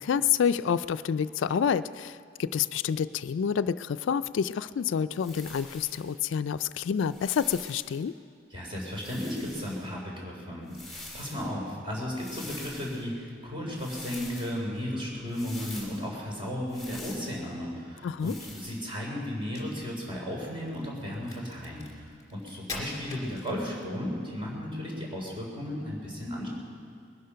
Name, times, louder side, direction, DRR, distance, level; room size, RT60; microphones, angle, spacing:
voice 1, 0.0-8.1 18.0-18.4, left 7 dB, 85° left, 13 dB, 0.3 m, -28 dB
sound 1, 5.2-6.1 7.0-8.0 8.9-9.9 10.6-11.5 12.1-13.0 13.8-14.6 15.3-16.0 16.7-17.4 18.2-18.8, left 2 dB, ahead, 3.1 m, -45 dB
voice 2, 8.5-10.8 11.1-21.9 22.3-26.5, left 1 dB, 30° right, -3 dB, 3.8 m, -34 dB
Crack, 19.4-24.0, left 3 dB, 20° left, 2.5 m, -44 dB
21.0 x 11.5 x 5.7 m, 2.3 s
head